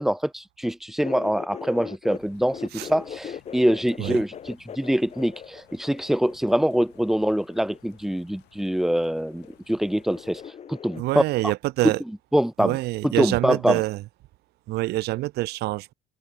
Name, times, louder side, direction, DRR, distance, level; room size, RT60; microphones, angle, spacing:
voice 1, 0.0-10.4 10.7-11.2 11.8-11.9 12.3-12.8 13.0-13.8, equal, ahead, 0.5 m, -24 dB
sound 1, 1.0-2.2 2.5-8.0 9.0-9.6 9.8-11.0, left 8 dB, 40° left, 1.4 m, -40 dB
sound 2, 2.1-10.5, left 19 dB, 90° left, 6.2 m, -57 dB
voice 2, 11.0-12.0 12.6-14.0 14.7-15.9, right 18 dB, 75° right, 0.5 m, -26 dB
cardioid pair, 110°, 17 cm